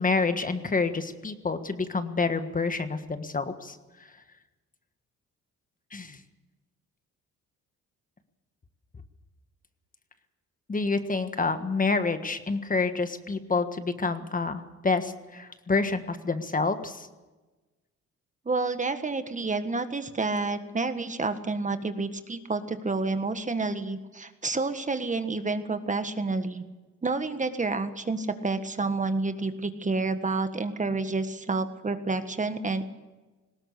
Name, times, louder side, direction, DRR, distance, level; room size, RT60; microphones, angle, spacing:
voice 1, 0.0-3.8 5.9-6.2 10.7-17.1, left 4 dB, 25° left, 9 dB, 1.5 m, -28 dB
voice 2, 18.4-26.6 27.0-32.8, right 3 dB, 25° right, 9 dB, 1.6 m, -29 dB
19.5 x 17.0 x 8.2 m, 1.2 s
cardioid pair, 90°, 30 cm